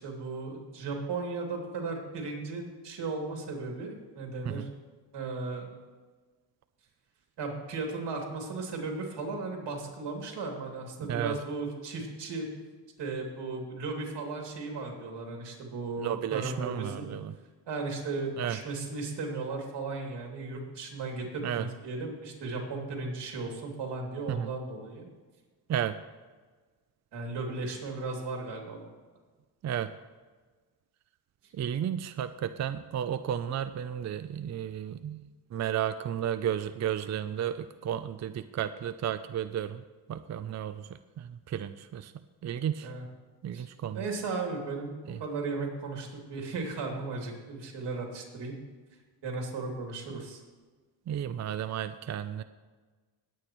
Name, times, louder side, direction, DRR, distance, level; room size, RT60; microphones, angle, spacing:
voice 1, 0.0-4.7 5.1-5.7 7.4-12.5 13.0-17.2 17.7-25.1 27.1-28.9 42.8-43.1 43.5-43.7 43.9-48.5 49.2-50.4, right 3 dB, 80° right, 0 dB, 2.6 m, -36 dB
voice 2, 11.0-11.4 16.0-17.3 18.4-18.6 21.4-21.6 24.3-24.5 25.7-26.0 29.6-29.9 31.5-35.3 35.5-39.8 40.1-40.9 41.2-42.1 42.4-42.9 43.4-44.0 45.1-45.2 51.1-52.4, right 10 dB, 40° right, 11 dB, 0.4 m, -33 dB
19.0 x 8.8 x 3.0 m, 1.4 s
cardioid pair, 105°, 41 cm